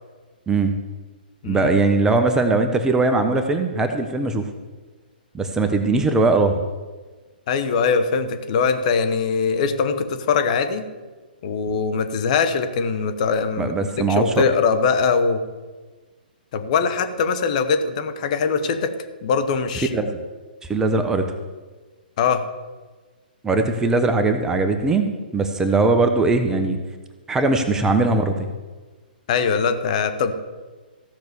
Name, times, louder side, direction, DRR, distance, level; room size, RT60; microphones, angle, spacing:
voice 1, 0.5-0.8 1.4-4.5 5.3-6.6 13.6-14.4 19.9-20.2 20.6-21.3 23.4-26.8 27.3-28.5, right 3 dB, 10° right, 6 dB, 0.9 m, -20 dB
voice 2, 7.5-10.8 11.4-15.4 16.5-18.9 19.2-20.1 22.2-22.4 29.3-30.3, left 5 dB, 45° left, 8 dB, 1.3 m, -22 dB
15.0 x 6.0 x 7.0 m, 1.3 s
figure-of-eight pair, 130°, 5 cm